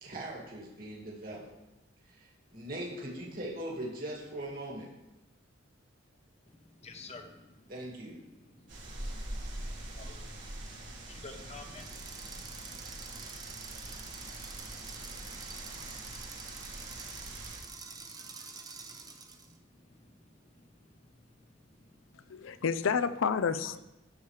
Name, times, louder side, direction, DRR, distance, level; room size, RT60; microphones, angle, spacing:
voice 1, 0.0-1.5 2.1-4.9 7.7-8.1, right 1 dB, 45° right, -4 dB, 2.3 m, -40 dB
voice 2, 6.5-7.7 8.2-10.2 11.1-22.7, left 3 dB, 30° left, 5 dB, 0.9 m, -55 dB
sound 1, 8.7-17.6, right 1 dB, 65° right, 3.5 m, -43 dB
sound 2, 11.7-19.5, right 4 dB, 20° right, 0.7 m, -47 dB
voice 3, 22.1-23.8, left 6 dB, 75° left, 13 dB, 0.5 m, -30 dB
12.0 x 7.1 x 3.3 m, 0.96 s
head